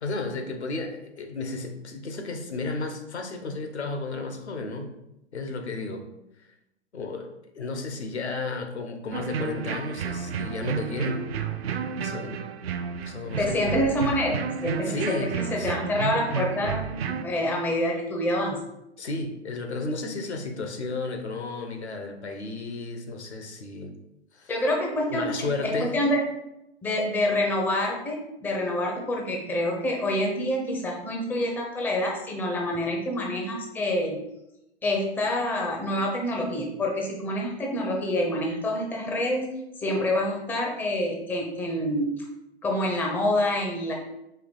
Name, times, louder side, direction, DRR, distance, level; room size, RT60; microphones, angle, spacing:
voice 1, 0.0-4.9 5.3-6.1 6.9-11.2 12.0-12.4 13.0-13.6 14.8-15.8 19.0-23.9 24.3-24.5 25.1-26.1, left 3 dB, 75° left, 5 dB, 0.9 m, -33 dB
sound 1, 9.1-17.2, right 6 dB, 65° right, 0.5 m, -31 dB
voice 2, 13.2-18.6 24.5-26.2 26.8-34.2 34.8-39.5 39.8-42.1 42.6-43.9, left 1 dB, 5° left, 0 dB, 0.4 m, -27 dB
4.7 x 3.0 x 3.8 m, 0.88 s
figure-of-eight pair, 110°, 34 cm